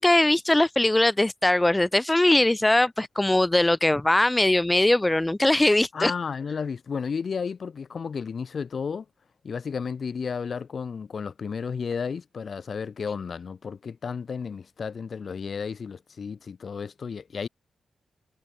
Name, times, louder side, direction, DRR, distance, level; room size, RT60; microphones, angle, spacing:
voice 1, 0.0-6.1, left 1 dB, 10° left, 2.2 m, -21 dB
voice 2, 5.9-9.1 9.4-17.5, left 6 dB, 45° left, 5.5 m, -32 dB
wide cardioid pair, 130°, 0 cm